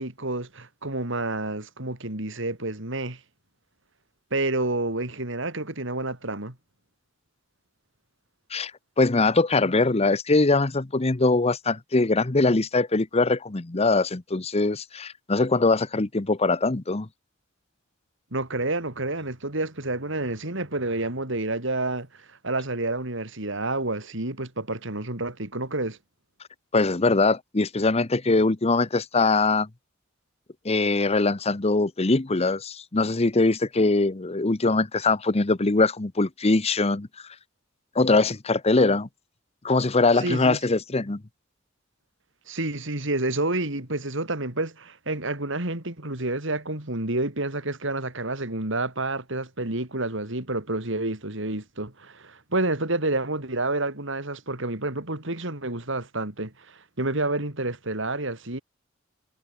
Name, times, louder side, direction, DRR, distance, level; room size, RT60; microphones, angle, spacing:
voice 1, 0.0-3.2 4.3-6.6 18.3-26.0 40.1-40.6 42.5-58.6, right 2 dB, 65° right, 4.1 m, -29 dB
voice 2, 9.0-17.1 26.7-29.7 30.6-37.1 38.0-39.1 39.6-41.2, left 3 dB, 30° left, 0.9 m, -22 dB
head